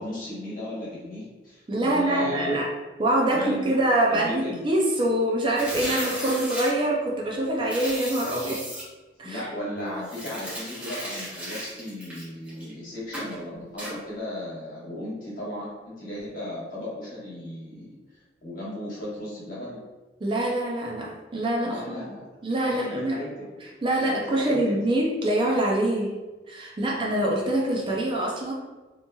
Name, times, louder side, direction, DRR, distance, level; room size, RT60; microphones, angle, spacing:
voice 1, 0.0-2.6 3.3-3.8 4.1-4.6 9.2-17.9 18.4-19.8 21.6-22.3 22.6-23.5 24.0-24.7, left 1 dB, 45° left, -7 dB, 1.2 m, -35 dB
voice 2, 1.7-2.7 3.0-8.6 9.2-9.5 20.2-22.0 22.4-23.2 23.8-26.2 26.5-28.5, right 1 dB, 25° right, -2 dB, 0.4 m, -25 dB
sound 1, 5.5-6.7 7.7-8.8 10.0-12.7 13.1-13.4 13.8-13.9, equal, 5° right, 0.9 m, -35 dB
2.9 x 2.8 x 2.2 m, 1.2 s
head